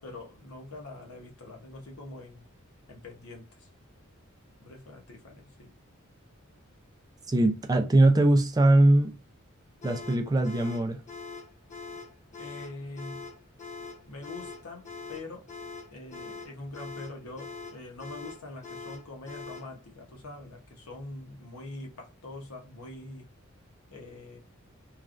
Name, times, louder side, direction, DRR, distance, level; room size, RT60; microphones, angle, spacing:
voice 1, 0.0-2.4 2.9-3.7 4.6-5.7 12.4-13.2 14.0-15.5 15.9-23.3 23.9-24.4, left 2 dB, 85° left, 0.9 m, -44 dB
voice 2, 7.3-9.1 9.8-11.0, right 1 dB, 20° right, 0.4 m, -21 dB
sound 1, 9.8-19.7, left 4 dB, 35° left, 0.7 m, -43 dB
3.1 x 2.4 x 2.5 m
head